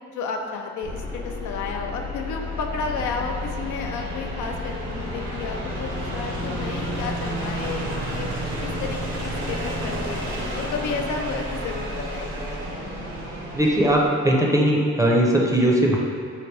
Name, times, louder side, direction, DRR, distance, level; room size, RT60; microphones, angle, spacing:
voice 1, 0.1-8.3 8.6-10.3 10.6-12.4, left 4 dB, 75° left, 3 dB, 0.5 m, -32 dB
sound 1, 0.8-14.1, equal, 70° right, 0.9 m, -31 dB
voice 2, 13.5-16.0, right 1 dB, 10° right, -2 dB, 0.6 m, -19 dB
4.9 x 2.5 x 3.2 m, 2.3 s
cardioid pair, 90°, 30 cm